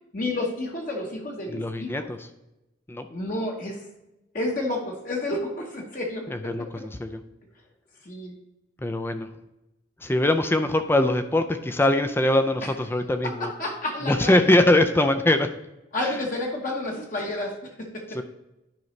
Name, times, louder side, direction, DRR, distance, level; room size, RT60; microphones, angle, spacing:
voice 1, 0.1-2.1 3.1-3.8 4.3-6.5 8.0-8.3 13.2-14.3 15.9-18.0, left 2 dB, 40° left, 0 dB, 1.1 m, -30 dB
voice 2, 1.5-2.3 2.9-3.1 6.3-7.2 8.8-9.3 10.0-13.5 14.0-15.5 16.0-16.1 18.1-18.2, left 1 dB, 10° left, 8 dB, 0.4 m, -22 dB
10.5 x 5.4 x 3.2 m, 0.95 s
head